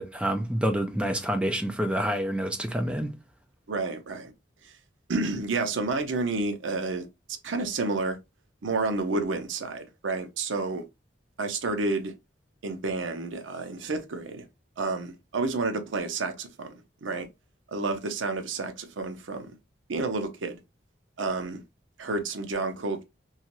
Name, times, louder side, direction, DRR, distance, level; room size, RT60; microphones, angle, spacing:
voice 1, 0.0-3.1, equal, 5° right, 0.4 m, -27 dB
voice 2, 3.7-4.3 4.6-4.7 5.1-7.1 7.4-8.2 8.6-10.8 11.4-12.1 12.6-14.4 14.8-16.7 17.0-17.3 17.7-19.5 19.9-20.6 21.2-21.6 22.0-23.0, right 3 dB, 90° right, 0.6 m, -30 dB
2.9 x 2.4 x 2.9 m
head